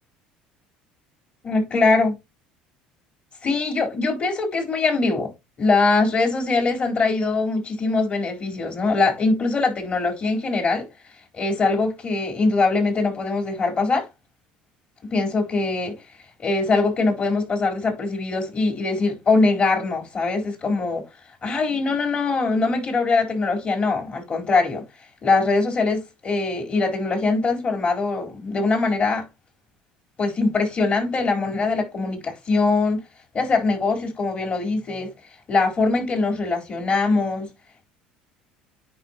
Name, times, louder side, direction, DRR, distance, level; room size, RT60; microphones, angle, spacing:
voice 1, 1.4-2.1 3.4-5.3 5.6-10.9 11.3-14.1 15.1-16.0 16.4-21.0 21.4-24.8 25.2-29.3 30.2-33.0 33.3-35.1 35.5-37.5, left 3 dB, 40° left, 4.4 m, -22 dB
9.3 x 5.6 x 3.0 m
hypercardioid pair, 75°, 4 cm